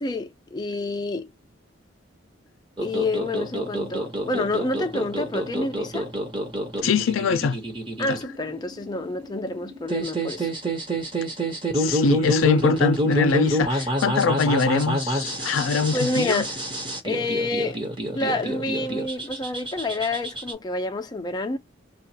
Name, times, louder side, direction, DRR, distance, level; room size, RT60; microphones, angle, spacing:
voice 1, 0.0-1.3 2.8-6.1 8.0-10.5 15.9-16.5 17.0-17.8 18.1-21.6, left 2 dB, 20° left, 0.5 m, -28 dB
sound 1, 2.8-20.5, equal, 25° right, 1.0 m, -27 dB
voice 2, 6.8-7.6 8.1-8.2 11.7-16.4, left 5 dB, 80° left, 0.4 m, -23 dB
2.4 x 2.2 x 2.8 m
head